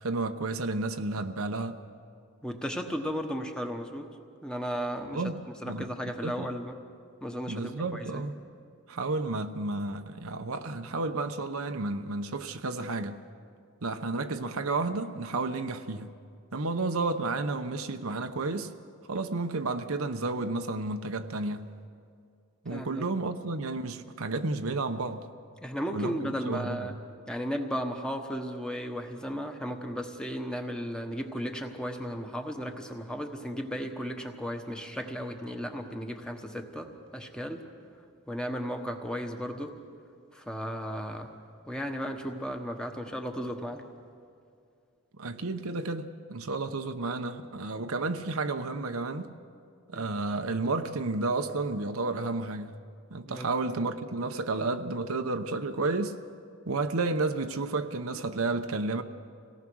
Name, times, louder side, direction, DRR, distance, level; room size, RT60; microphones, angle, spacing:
voice 1, 0.0-1.8 5.1-5.4 5.7-5.9 6.2-6.5 7.5-8.3 8.9-13.2 13.8-16.1 16.5-18.7 19.1-21.7 22.6-25.2 25.9-26.8 45.2-49.3 49.9-52.7 53.1-56.2 56.7-59.0, right 3 dB, 75° right, 0.9 m, -31 dB
voice 2, 2.4-4.1 4.4-5.3 5.6-6.8 7.2-8.2 22.7-23.0 25.6-26.9 27.3-37.6 38.3-39.7 40.3-41.3 41.7-43.9 49.9-50.1 53.3-53.5, equal, 5° left, 1.2 m, -35 dB
26.0 x 18.0 x 6.3 m
head